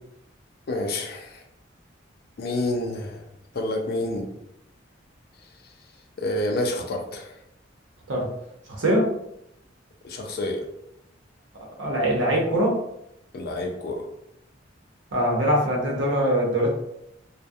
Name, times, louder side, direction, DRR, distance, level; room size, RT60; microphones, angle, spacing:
voice 1, 0.7-1.4 2.4-3.2 3.5-4.3 6.2-7.3 10.0-10.7 13.3-14.1, left 1 dB, 55° left, 3 dB, 0.4 m, -28 dB
voice 2, 8.7-9.1 11.8-12.8 15.1-16.7, equal, 75° right, -2 dB, 0.7 m, -22 dB
2.3 x 2.1 x 2.6 m, 0.78 s
head